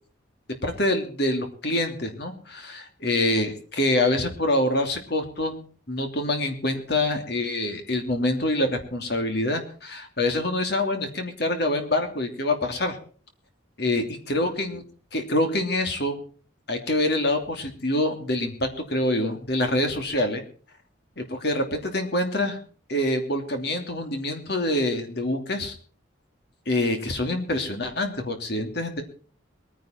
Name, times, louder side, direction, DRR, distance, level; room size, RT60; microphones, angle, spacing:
voice 1, 0.6-13.0 13.8-14.8 15.1-16.2 16.7-20.4 21.2-22.6 22.9-25.7 26.7-29.0, left 1 dB, 55° left, 5 dB, 2.8 m, -26 dB
22.0 x 10.0 x 4.5 m, 0.41 s
head